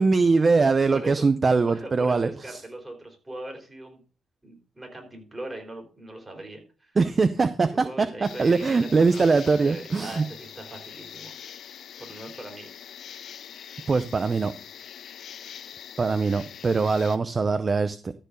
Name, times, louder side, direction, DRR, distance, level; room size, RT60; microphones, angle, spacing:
voice 1, 0.0-2.6 7.0-10.2 13.9-14.5 16.0-18.1, right 4 dB, 35° right, 12 dB, 0.6 m, -22 dB
voice 2, 0.9-1.3 1.7-4.0 4.4-7.0 7.7-11.3 12.0-12.7, right 1 dB, 15° right, 3 dB, 4.0 m, -40 dB
sound 1, 8.2-17.2, left 9 dB, 65° left, 0.9 m, -43 dB
13.5 x 4.6 x 6.5 m, 0.36 s
cardioid pair, 90°, 0 cm